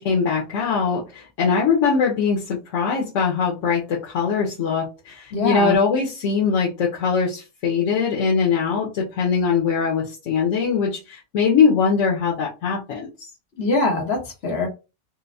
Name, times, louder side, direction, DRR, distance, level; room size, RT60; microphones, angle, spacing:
voice 1, 0.0-13.1, left 5 dB, 85° left, 1.1 m, -21 dB
voice 2, 5.3-5.7 13.6-14.7, left 2 dB, 60° left, 1.3 m, -22 dB
4.3 x 2.0 x 2.6 m
omnidirectional pair, 1.2 m